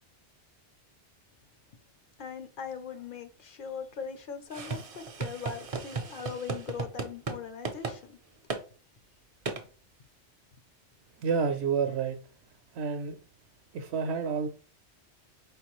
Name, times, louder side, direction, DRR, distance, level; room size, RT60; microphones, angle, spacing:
voice 1, 2.2-8.2, left 6 dB, 60° left, 0.6 m, -40 dB
sound 1, 4.5-7.4 7.6-8.0 8.5-8.6 9.5-9.6, right 4 dB, 45° right, 0.5 m, -35 dB
voice 2, 11.2-12.2 12.7-13.2 13.7-14.5, right 6 dB, 70° right, 0.8 m, -29 dB
4.3 x 3.5 x 3.0 m
omnidirectional pair, 1.2 m